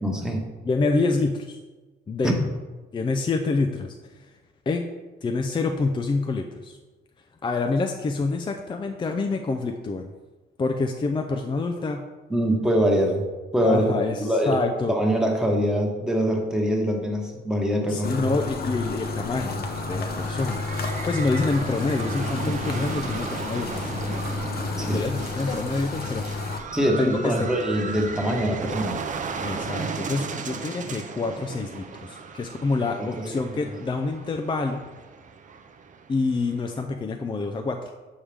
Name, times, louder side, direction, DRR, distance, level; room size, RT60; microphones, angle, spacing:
voice 1, 0.0-0.4 2.2-2.4 12.3-13.3 13.5-14.6 14.9-18.2 24.8-25.1 26.7-29.0 33.2-33.4, equal, 5° right, 0 dB, 1.2 m, -24 dB
voice 2, 0.6-1.6 2.1-2.3 2.9-3.9 4.7-4.8 5.2-6.8 7.4-10.1 10.6-12.0 13.6-14.9 17.9-23.8 24.1-24.2 24.7-26.2 27.0-27.5 29.4-34.8 36.1-37.9, left 3 dB, 25° left, 5 dB, 0.4 m, -27 dB
sound 1, 18.0-26.6, left 3 dB, 50° left, 0.8 m, -30 dB
sound 2, 19.3-36.8, right 5 dB, 40° right, 0.6 m, -36 dB
7.2 x 4.8 x 3.4 m, 1.3 s
cardioid pair, 90°, 20 cm